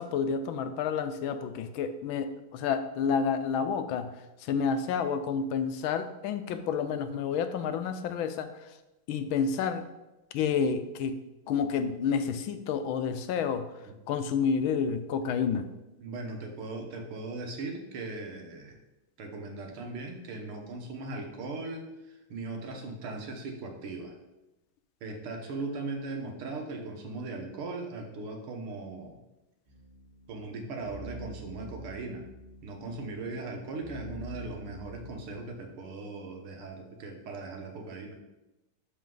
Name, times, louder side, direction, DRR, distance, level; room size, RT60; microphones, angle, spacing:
voice 1, 0.0-4.1 4.4-8.7 9.1-9.8 10.3-13.7 14.1-15.7, left 6 dB, 75° left, 9 dB, 1.4 m, -29 dB
voice 2, 16.0-18.8 19.2-24.2 25.0-29.2 30.3-32.3 32.6-38.2, right 3 dB, 85° right, 2 dB, 2.1 m, -39 dB
sound 1, 29.6-35.4, right 1 dB, 20° right, 2.8 m, -46 dB
12.5 x 4.6 x 3.9 m, 0.99 s
omnidirectional pair, 2.3 m